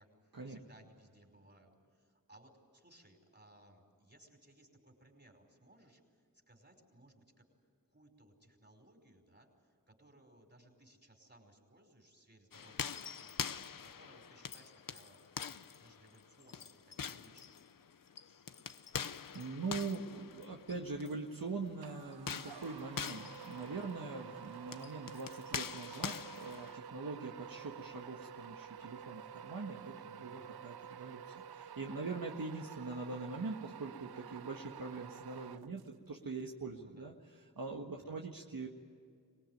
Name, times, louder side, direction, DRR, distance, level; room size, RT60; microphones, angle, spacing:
voice 1, 0.0-7.4 7.9-17.6 30.3-30.6 36.6-37.1 38.0-38.2, right 1 dB, 30° right, 4 dB, 5.3 m, -63 dB
sound 1, 12.5-21.1 22.1-26.8, left 7 dB, 60° left, 0.7 m, -44 dB
voice 2, 19.3-37.1 37.6-38.7, right 3 dB, 65° right, 1 dB, 1.7 m, -43 dB
sound 2, 21.8-36.1, right 8 dB, 85° right, 0.6 m, -50 dB
24.5 x 20.0 x 9.4 m, 2.1 s
cardioid pair, 45°, 37 cm